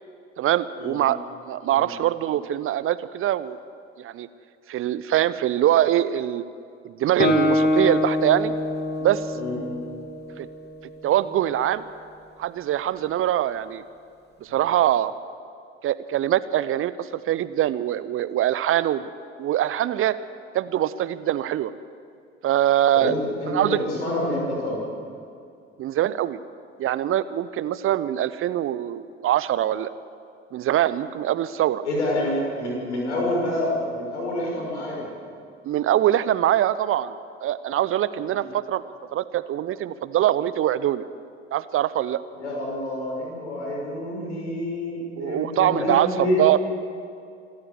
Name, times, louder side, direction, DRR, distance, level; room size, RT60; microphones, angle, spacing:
voice 1, 0.4-1.2 1.5-3.6 4.0-4.3 4.7-6.4 6.8-8.5 9.0-9.3 10.4-10.5 11.0-11.8 12.4-13.8 14.4-15.1 15.8-19.1 19.4-20.2 20.5-21.7 22.4-23.2 23.5-23.8 25.8-26.4 26.8-29.9 30.5-31.8 35.6-37.1 37.4-41.0 41.5-42.2 45.2-46.6, right 12 dB, 40° right, 16 dB, 0.7 m, -23 dB
Guitar, 7.2-10.9, left 2 dB, 30° left, 2.4 m, -25 dB
voice 2, 22.9-24.8 31.9-35.1 38.3-38.4 42.3-46.6, left 1 dB, 75° left, -2 dB, 6.2 m, -27 dB
26.5 x 14.0 x 7.9 m, 2.4 s
figure-of-eight pair, 60°, 35 cm